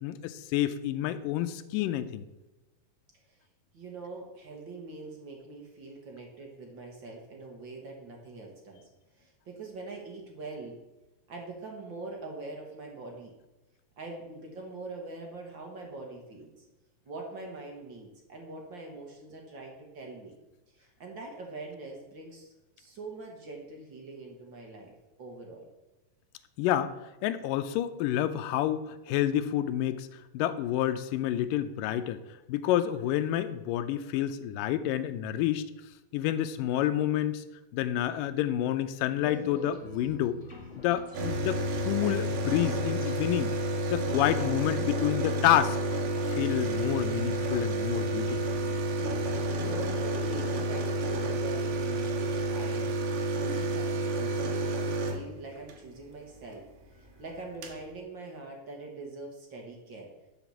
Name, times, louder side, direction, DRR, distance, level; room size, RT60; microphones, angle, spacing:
voice 1, 0.0-2.3 26.6-26.9 27.2-30.1 30.3-32.2 32.5-35.6 36.1-37.4 37.7-40.4 40.8-43.5 43.9-45.8 46.3-48.4, left 12 dB, 80° left, 9 dB, 2.2 m, -29 dB
voice 2, 3.7-8.9 9.1-10.8 11.3-13.3 14.0-16.6 17.0-20.4 20.7-25.7 49.3-56.7 56.9-60.1, right 2 dB, 45° right, 1 dB, 1.6 m, -43 dB
sound 1, 39.1-50.4, left 3 dB, 30° left, 1.3 m, -44 dB
sound 2, 41.1-55.8 57.1-57.2 57.3-57.8, right 1 dB, 75° right, 2.8 m, -30 dB
11.0 x 4.9 x 7.1 m, 1.1 s
omnidirectional pair, 4.0 m